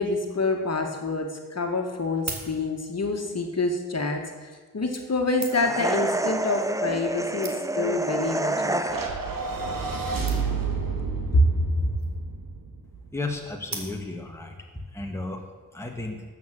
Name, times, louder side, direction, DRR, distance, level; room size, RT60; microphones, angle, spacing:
voice 1, 0.0-8.9 11.3-11.5 11.8-11.9, left 2 dB, 45° left, 3 dB, 2.0 m, -26 dB
sound 1, 2.1-3.1 4.0-4.1 4.9-5.9 6.7-6.8 7.1-7.2 7.4-7.9 8.7-8.9 9.2-9.3 9.5-9.6 9.8-9.9 10.3-10.7 11.8-12.2 13.7-14.3 14.9-15.0, right 3 dB, 50° right, 2.1 m, -40 dB
sound 2, 5.5-9.4, right 2 dB, 10° right, 0.6 m, -28 dB
sound 3, 8.9-13.3, right 4 dB, 65° right, 2.1 m, -30 dB
voice 2, 13.1-14.6 14.9-15.4 15.7-16.2, left 2 dB, 5° left, 1 dB, 1.6 m, -33 dB
13.0 x 7.8 x 7.9 m, 1.4 s
wide cardioid pair, 90°, 35 cm